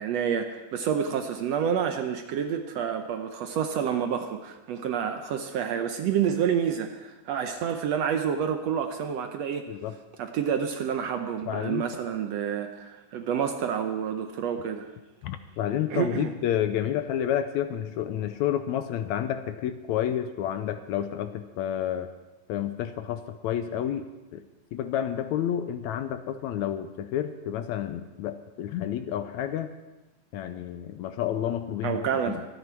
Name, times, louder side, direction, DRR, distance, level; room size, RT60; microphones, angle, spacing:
voice 1, 0.0-9.7 10.2-14.9 15.9-16.3 31.8-32.5, right 8 dB, 70° right, 6 dB, 1.7 m, -28 dB
voice 2, 11.5-11.8 15.2-22.1 22.5-24.4 24.7-29.7 30.3-32.3, left 10 dB, 75° left, 10 dB, 1.8 m, -30 dB
24.0 x 9.5 x 4.5 m, 1.1 s
omnidirectional pair, 3.6 m